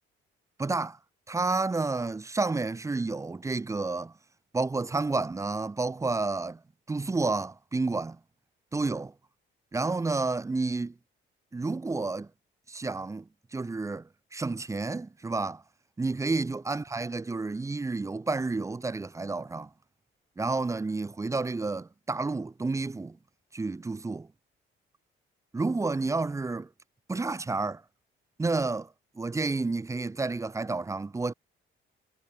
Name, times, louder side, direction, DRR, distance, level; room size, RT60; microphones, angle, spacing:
voice 1, 0.6-1.0 1.3-4.1 4.5-6.6 6.9-8.2 8.7-9.1 9.7-10.9 11.5-12.3 12.7-15.6 16.0-19.7 20.4-23.2 23.5-24.3 25.5-26.7 27.1-27.8 28.4-31.3, right 3 dB, 15° right, 0.7 m, -30 dB
cardioid pair, 125°, 21 cm